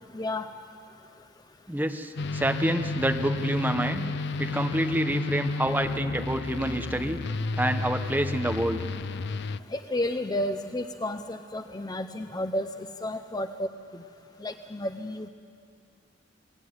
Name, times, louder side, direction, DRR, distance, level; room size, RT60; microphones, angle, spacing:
voice 1, 0.1-0.5 9.7-12.7 13.0-13.7 13.9-14.0 14.4-15.3, left 1 dB, 20° left, 8 dB, 0.7 m, -31 dB
voice 2, 1.7-4.0 4.4-7.2 7.6-8.8, right 1 dB, 10° right, 6 dB, 1.2 m, -27 dB
sound 1, 2.2-9.6, left 3 dB, 65° left, 0.5 m, -32 dB
27.5 x 20.0 x 9.6 m, 2.4 s
head